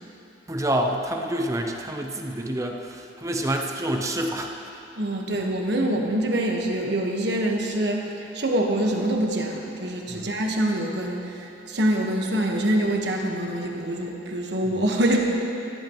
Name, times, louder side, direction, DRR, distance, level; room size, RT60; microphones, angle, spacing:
voice 1, 0.5-4.5 10.1-10.3, right 1 dB, 15° right, 3 dB, 0.8 m, -27 dB
voice 2, 5.0-15.3, right 1 dB, 65° right, 1 dB, 1.4 m, -25 dB
16.0 x 14.5 x 3.1 m, 3.0 s
head